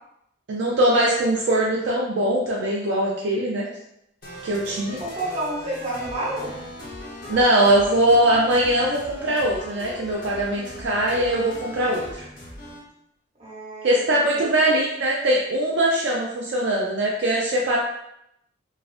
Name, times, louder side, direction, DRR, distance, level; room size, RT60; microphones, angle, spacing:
voice 1, 0.5-3.6 4.4-5.0 7.3-12.3 13.8-17.8, right 1 dB, 60° right, -4 dB, 0.4 m, -21 dB
sound 1, 4.2-12.8, equal, 50° left, 1.0 m, -39 dB
voice 2, 5.0-6.5 13.4-14.5, right 1 dB, 30° right, -6 dB, 1.0 m, -30 dB
3.1 x 2.4 x 2.5 m, 0.78 s
head